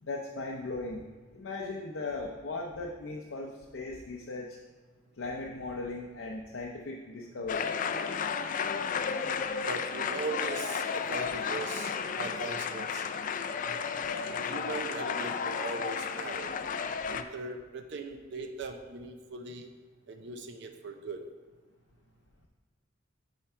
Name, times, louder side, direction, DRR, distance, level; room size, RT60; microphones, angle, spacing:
voice 1, 0.0-4.6 5.2-7.7, left 3 dB, 85° left, -1 dB, 0.6 m, -38 dB
sound 1, 7.5-17.2, left 6 dB, 45° left, 0.4 m, -33 dB
voice 2, 9.7-13.1 13.7-13.8 14.3-16.5 17.1-19.7 20.1-21.2, right 3 dB, 65° right, 5 dB, 0.6 m, -39 dB
9.2 x 4.6 x 4.3 m, 1.3 s
head